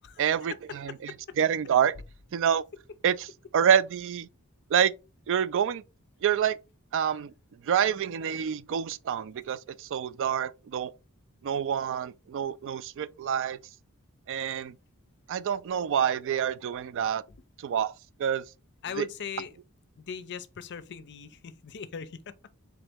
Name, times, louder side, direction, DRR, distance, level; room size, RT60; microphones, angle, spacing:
voice 1, 0.2-0.5 1.4-1.9 2.3-2.6 3.0-3.1 3.5-4.3 4.7-4.9 5.3-5.8 6.2-6.6 6.9-7.3 7.6-10.9 11.4-13.6 14.3-14.8 15.3-17.2 17.6-17.9 18.2-18.4 19.0-19.1, right 8 dB, 60° right, 0.3 m, -27 dB
voice 2, 0.7-1.4 17.3-17.4 18.8-19.6 20.0-22.5, left 6 dB, 50° left, 0.5 m, -40 dB
4.0 x 3.5 x 3.4 m
head